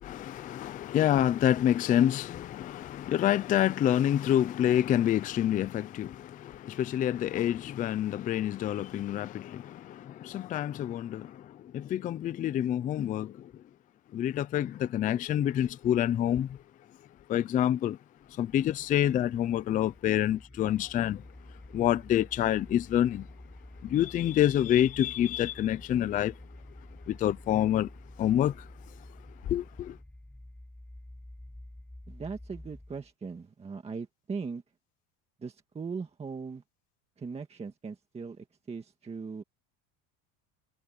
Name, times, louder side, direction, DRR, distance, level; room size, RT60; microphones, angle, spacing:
voice 1, 0.0-13.5 14.1-16.6 17.3-18.0 18.4-21.2 21.7-23.3 23.8-26.3 27.1-27.9 28.2-28.7 29.4-30.0, left 11 dB, 20° left, 0.4 m, -27 dB
sound 1, 18.2-33.1, left 1 dB, 5° left, 2.0 m, -49 dB
voice 2, 32.1-34.6 35.4-36.6 37.2-39.4, right 5 dB, 15° right, 1.8 m, -39 dB
cardioid pair, 155°, 39 cm